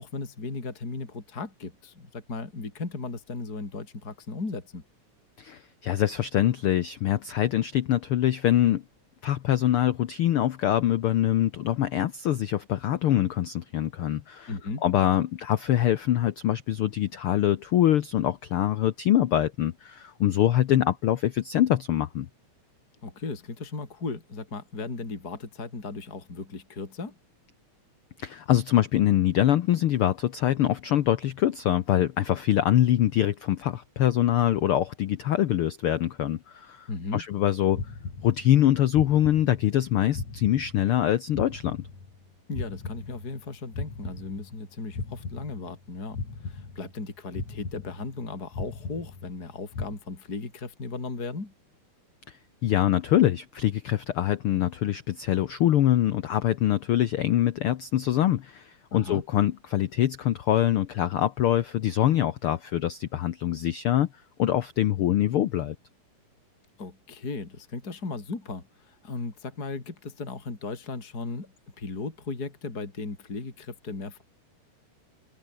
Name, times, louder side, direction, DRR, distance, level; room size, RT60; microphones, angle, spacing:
voice 1, 0.0-4.8 14.5-14.8 23.0-27.2 36.9-37.2 42.5-46.2 46.4-51.5 58.9-59.2 66.8-74.2, left 3 dB, 30° left, 4.4 m, -36 dB
voice 2, 5.4-8.8 9.2-14.5 14.8-22.3 28.2-36.9 37.1-37.8 38.2-41.8 52.6-64.1 64.4-65.7, left 12 dB, 75° left, 1.2 m, -24 dB
sound 1, 37.7-38.7 38.9-39.9 40.1-42.3 42.5-44.7 44.9-45.9 46.1-47.1 47.3-48.3 48.5-49.5 49.7-50.0, left 4 dB, 60° left, 7.2 m, -37 dB
omnidirectional pair, 3.6 m